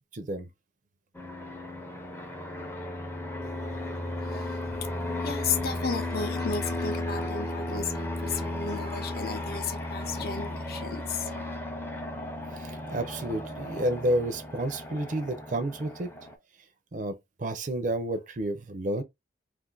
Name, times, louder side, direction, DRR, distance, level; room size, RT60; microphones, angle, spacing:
voice 1, 0.1-0.5 12.6-16.1 16.9-19.0, right 1 dB, 45° right, 0.5 m, -30 dB
Fixed-wing aircraft airplane, 1.1-16.3, left 1 dB, 10° left, 0.5 m, -35 dB
voice 2, 4.2-4.9 5.2-11.6, left 5 dB, 55° left, 0.6 m, -34 dB
2.5 x 2.5 x 3.8 m
head